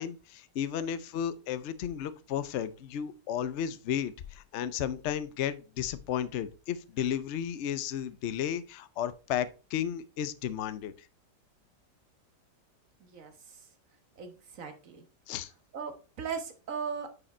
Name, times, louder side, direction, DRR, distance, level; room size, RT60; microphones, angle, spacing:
voice 1, 0.0-10.9 15.3-15.5, left 9 dB, 65° left, 0.7 m, -33 dB
voice 2, 14.2-15.0 15.7-17.2, right 6 dB, 50° right, 1.6 m, -38 dB
9.5 x 5.0 x 4.2 m
omnidirectional pair, 1.9 m